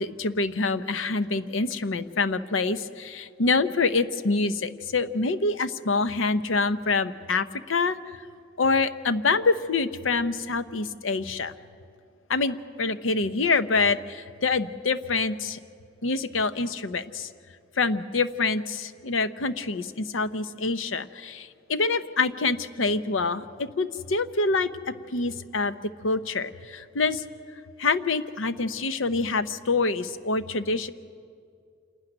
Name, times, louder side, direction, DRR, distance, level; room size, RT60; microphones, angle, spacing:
voice 1, 0.0-8.0 8.6-11.5 12.3-15.6 16.0-17.3 17.8-24.7 25.1-25.7 26.0-27.2 27.8-30.9, left 3 dB, 85° left, 12 dB, 0.8 m, -26 dB
27.0 x 12.0 x 10.0 m, 2.3 s
head